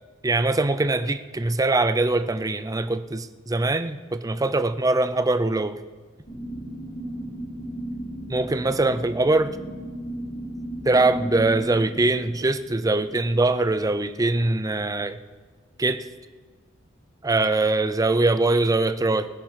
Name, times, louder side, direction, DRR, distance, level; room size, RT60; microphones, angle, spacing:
voice 1, 0.2-5.8 8.3-9.5 10.8-15.2 15.8-16.0 17.2-19.3, right 2 dB, 15° right, 11 dB, 0.5 m, -22 dB
sound 1, 6.3-14.2, right 1 dB, 35° left, 4.8 m, -36 dB
20.0 x 10.5 x 4.6 m, 1.4 s
head